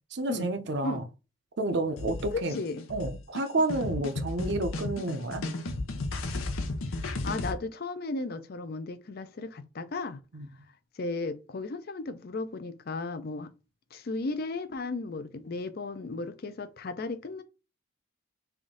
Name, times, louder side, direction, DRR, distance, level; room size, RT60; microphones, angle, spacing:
voice 1, 0.1-1.0 1.6-2.5 2.9-5.5 10.3-10.5, right 2 dB, 55° right, 0.6 m, -30 dB
sound 1, 2.0-7.5, left 2 dB, 85° left, 0.7 m, -34 dB
voice 2, 2.3-2.8 6.9-10.2 11.0-13.5 13.9-17.4, left 3 dB, 50° left, 0.5 m, -35 dB
3.5 x 2.6 x 3.7 m
head